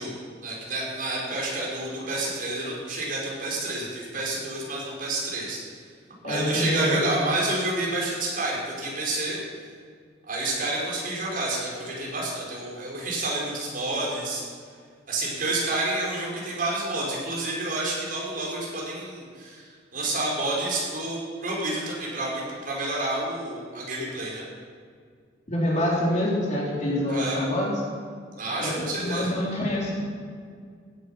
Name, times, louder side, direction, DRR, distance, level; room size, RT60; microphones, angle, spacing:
voice 1, 0.0-5.8 6.2-9.4 10.3-14.4 15.1-24.4 27.1-27.4 28.4-29.3, right 2 dB, 50° right, -4 dB, 5.0 m, -29 dB
voice 2, 6.2-7.0 25.5-27.7 28.6-30.0, left 1 dB, 40° left, -4 dB, 3.7 m, -26 dB
16.0 x 11.5 x 5.8 m, 2.1 s
head